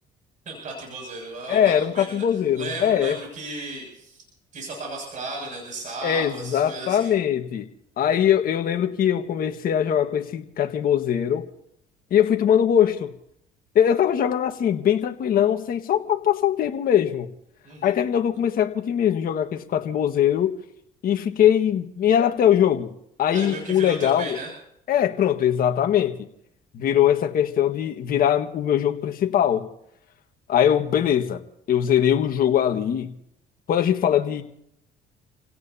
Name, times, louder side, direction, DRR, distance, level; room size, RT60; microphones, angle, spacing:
voice 1, 0.5-2.2 2.5-4.2 4.5-7.1 17.6-17.9 23.3-24.5, right 2 dB, 45° right, -1 dB, 7.2 m, -35 dB
voice 2, 1.5-3.2 6.0-7.6 8.0-11.5 12.1-13.1 13.7-17.3 17.8-20.5 21.0-22.9 23.2-24.4 24.9-26.2 26.7-29.7 30.5-31.4 31.7-33.1 33.7-34.4, left 9 dB, 55° left, 5 dB, 1.6 m, -21 dB
29.5 x 17.5 x 2.8 m, 0.75 s
cardioid pair, 95°, 17 cm